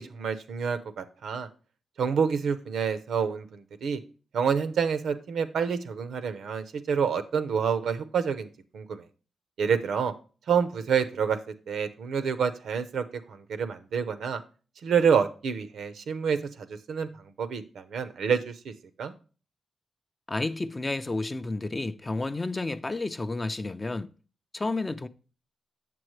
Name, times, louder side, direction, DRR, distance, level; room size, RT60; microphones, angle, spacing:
voice 1, 0.0-1.5 2.0-4.0 4.3-9.0 9.6-10.1 10.5-11.4 11.7-14.4 14.8-17.1 17.4-18.7 19.0-19.1, right 6 dB, 80° right, 0.7 m, -28 dB
voice 2, 20.3-24.1 24.5-25.1, left 2 dB, 20° left, 0.4 m, -31 dB
7.7 x 7.1 x 3.2 m
cardioid pair, 95°, 0 cm